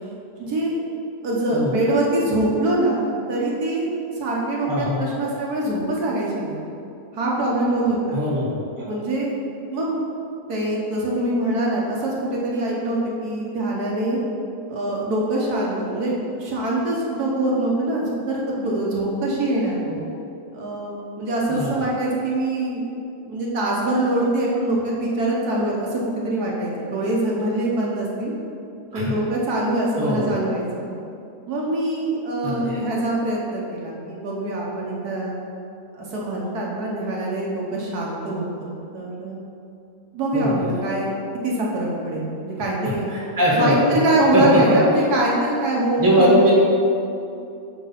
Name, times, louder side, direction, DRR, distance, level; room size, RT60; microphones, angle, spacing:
voice 1, 0.4-0.8 1.2-3.9 4.1-6.6 7.1-8.2 8.9-9.3 9.7-10.0 10.5-14.2 14.7-19.8 20.5-22.8 23.2-28.3 28.9-30.9 31.5-35.3 35.9-39.4 40.1-41.1 41.4-43.1 43.5-46.5, right 1 dB, 70° right, -4 dB, 1.5 m, -24 dB
voice 2, 4.7-5.1 8.1-8.5 8.8-8.9 19.9-20.0 21.5-21.8 28.9-29.1 30.0-30.3 32.4-32.8 40.3-40.8 43.1-44.0 44.3-44.6 46.0-46.5, equal, 15° right, -5 dB, 1.2 m, -20 dB
7.3 x 3.3 x 5.7 m, 2.6 s
omnidirectional pair, 1.8 m